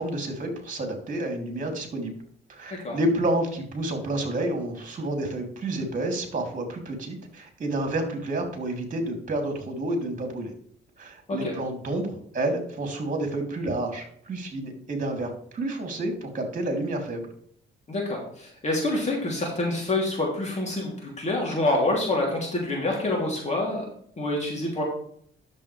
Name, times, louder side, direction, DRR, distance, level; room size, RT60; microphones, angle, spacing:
voice 1, 0.0-2.1 2.5-10.5 11.0-17.3, right 1 dB, 40° right, 3 dB, 3.2 m, -29 dB
voice 2, 17.9-23.8 24.2-24.8, left 2 dB, 35° left, -2 dB, 3.2 m, -27 dB
10.5 x 7.4 x 3.4 m, 0.62 s
cardioid pair, 90°, 20 cm